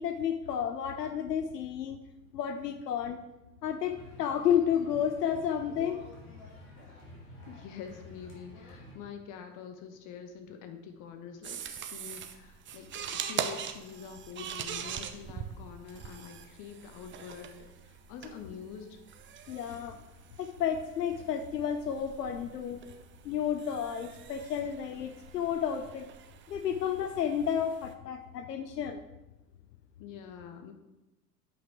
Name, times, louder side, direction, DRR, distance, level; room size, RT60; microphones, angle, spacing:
voice 1, 0.0-2.0 2.3-3.2 3.6-6.0 19.5-20.0 20.4-22.8 23.2-26.1 26.5-29.0, left 8 dB, 80° left, 9 dB, 0.7 m, -31 dB
sound 1, 3.8-9.0, left 2 dB, 65° left, 3.0 m, -50 dB
voice 2, 7.5-19.0 30.0-30.7, left 7 dB, 40° left, 5 dB, 1.4 m, -46 dB
sound 2, 11.4-27.9, right 8 dB, 25° right, 0.8 m, -43 dB
8.9 x 5.5 x 4.8 m, 1.0 s
hypercardioid pair, 90°, 48 cm